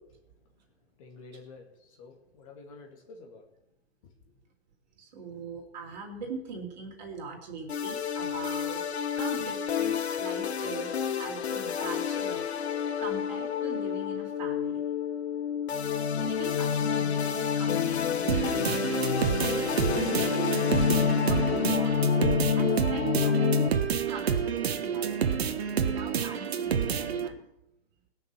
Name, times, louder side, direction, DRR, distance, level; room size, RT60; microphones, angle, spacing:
voice 1, 1.0-3.5 4.0-4.1, left 3 dB, 30° left, 2 dB, 2.0 m, -49 dB
voice 2, 5.0-10.9 11.2-12.4 13.0-14.8 16.2-18.6 19.0-20.5 20.9-22.0 22.6-23.6 24.0-25.1 25.7-27.4, right 4 dB, 45° right, 1 dB, 3.8 m, -41 dB
sound 1, 7.7-23.7, left 7 dB, 85° left, 1.6 m, -28 dB
sound 2, 18.3-27.3, right 7 dB, 70° right, 1.6 m, -29 dB
20.5 x 6.8 x 7.4 m, 0.84 s
hypercardioid pair, 170°, 32 cm